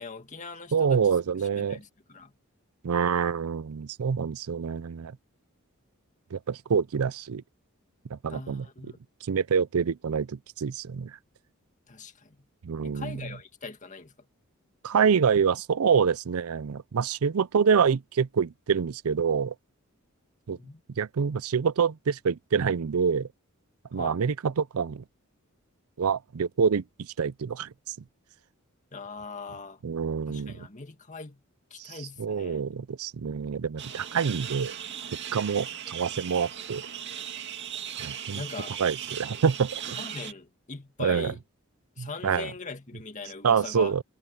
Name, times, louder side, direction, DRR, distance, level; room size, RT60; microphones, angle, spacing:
voice 1, 0.0-2.3 8.3-9.0 11.9-12.5 12.8-14.3 20.5-20.8 23.9-24.2 28.9-29.8 30.3-31.4 31.7-32.6 38.3-38.8 40.0-41.4 42.0-43.9, left 4 dB, 35° left, 2.1 m, -41 dB
voice 2, 0.7-1.8 2.8-5.1 6.3-7.4 8.1-8.6 9.3-11.2 12.6-13.1 14.8-19.5 20.5-20.6 21.0-23.3 23.9-25.0 26.0-27.7 29.8-30.6 31.8-34.7 35.3-36.8 38.0-38.4 38.8-40.0 41.0-41.3 42.0-42.5 43.4-44.0, right 6 dB, 90° right, 0.5 m, -26 dB
sound 1, 33.8-40.3, right 9 dB, 55° right, 2.3 m, -38 dB
head